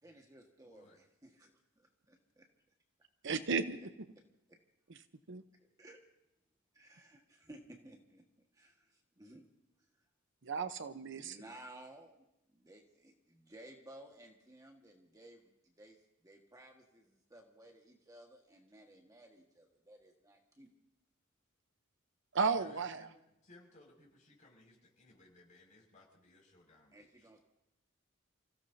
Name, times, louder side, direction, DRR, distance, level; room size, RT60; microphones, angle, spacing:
voice 1, 0.0-2.5 4.5-4.6 5.8-6.0 6.7-8.2 8.5-9.4 11.2-20.7 26.9-27.4, right 1 dB, 15° right, 1 dB, 1.6 m, -57 dB
voice 2, 0.6-1.0 22.6-27.3, left 2 dB, 40° left, -1 dB, 5.8 m, -62 dB
voice 3, 3.2-3.8 5.3-5.4 10.4-11.4 22.3-23.1, right 5 dB, 65° right, 11 dB, 0.8 m, -34 dB
29.5 x 16.5 x 2.7 m, 0.86 s
head